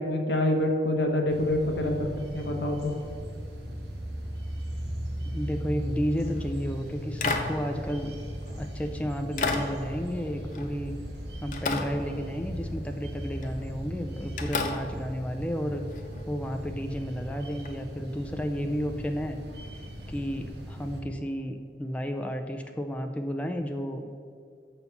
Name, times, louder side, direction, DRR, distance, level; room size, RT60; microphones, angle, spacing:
voice 1, 0.0-2.1 2.3-3.0, left 1 dB, 90° left, 3 dB, 1.1 m, -26 dB
sound 1, 1.3-21.0, equal, 80° right, 1.3 m, -38 dB
voice 2, 5.2-8.1 8.5-10.9 11.4-15.8 16.3-19.4 20.1-24.2, equal, 5° left, 4 dB, 0.4 m, -32 dB
sound 2, 6.2-6.5 7.2-8.7 9.4-11.2 11.5-12.7 13.4-13.7 14.4-16.2 17.6-17.7, left 3 dB, 45° left, 0.6 m, -34 dB
6.8 x 4.4 x 6.8 m, 2.4 s
head